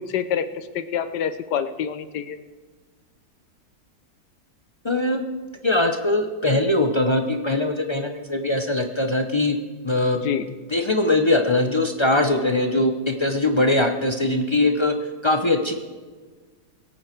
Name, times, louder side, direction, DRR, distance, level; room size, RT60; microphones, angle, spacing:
voice 1, 0.0-2.4 10.1-10.5, left 8 dB, 70° left, 12 dB, 1.2 m, -27 dB
voice 2, 4.8-5.2 5.6-9.6 9.8-10.2 10.7-14.9 15.2-15.7, left 2 dB, 40° left, 5 dB, 0.4 m, -21 dB
22.0 x 8.8 x 4.6 m, 1.4 s
omnidirectional pair, 2.0 m